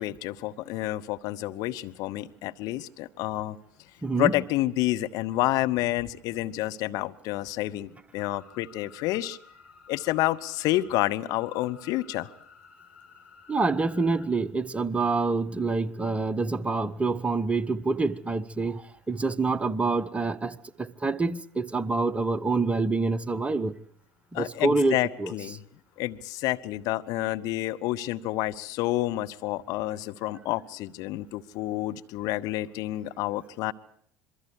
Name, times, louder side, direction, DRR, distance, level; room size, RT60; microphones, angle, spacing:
voice 1, 0.0-3.6 4.2-9.4 9.9-12.3 24.3-25.6 26.0-33.7, left 16 dB, 55° left, 0.9 m, -29 dB
voice 2, 4.0-4.3 13.5-23.7 24.3-25.3, right 3 dB, 15° right, 1.0 m, -27 dB
sound 1, 8.2-14.3, left 5 dB, 85° left, 4.4 m, -53 dB
27.0 x 22.5 x 4.7 m
hypercardioid pair, 70°, 7 cm